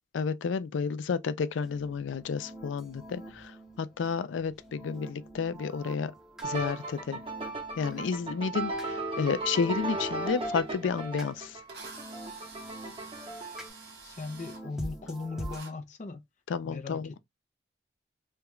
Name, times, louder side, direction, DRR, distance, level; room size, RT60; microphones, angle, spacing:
voice 1, 0.1-3.5 3.8-6.1 6.4-7.2 7.8-11.6 16.5-17.2, left 5 dB, 90° left, 0.4 m, -31 dB
sound 1, 1.4-15.6, right 1 dB, 5° right, 0.8 m, -47 dB
sound 2, 6.4-13.7, right 2 dB, 30° right, 0.9 m, -36 dB
Drill, 11.0-11.1 11.7-14.6 15.5-15.7, right 4 dB, 60° right, 1.1 m, -48 dB
voice 2, 14.0-16.2 16.6-17.2, left 3 dB, 40° left, 0.6 m, -38 dB
3.4 x 2.3 x 2.9 m
head